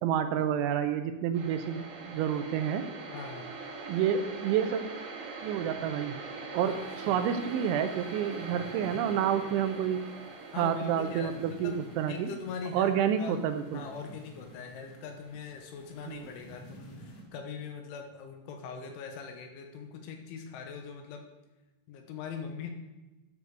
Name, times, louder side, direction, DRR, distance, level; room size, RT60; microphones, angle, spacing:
voice 1, 0.0-2.8 3.9-4.8 5.4-6.1 6.5-6.7 7.0-10.0 10.6-12.3 12.7-13.8 16.1-16.2, right 9 dB, 80° right, 8 dB, 2.9 m, -29 dB
sound 1, 1.3-15.2, right 3 dB, 60° right, 3.4 m, -43 dB
voice 2, 3.1-3.5 6.6-6.8 7.1-7.2 10.5-21.3 21.9-22.7, left 6 dB, 80° left, 4 dB, 3.4 m, -42 dB
sound 2, 6.6-17.2, equal, 55° left, 3.2 m, -53 dB
12.5 x 5.1 x 6.7 m, 1.1 s
omnidirectional pair, 5.7 m